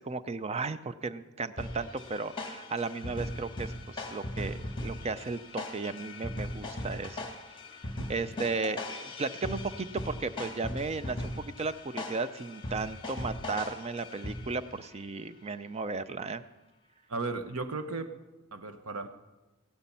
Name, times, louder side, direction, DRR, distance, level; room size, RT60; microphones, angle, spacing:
voice 1, 0.0-7.2 8.1-16.4, right 4 dB, 30° right, 13 dB, 0.5 m, -35 dB
sound 1, 1.6-14.7, left 1 dB, 25° left, 1.8 m, -39 dB
voice 2, 17.1-18.1 18.5-19.1, right 3 dB, 75° right, 9 dB, 1.1 m, -35 dB
16.5 x 11.5 x 5.5 m, 1.1 s
head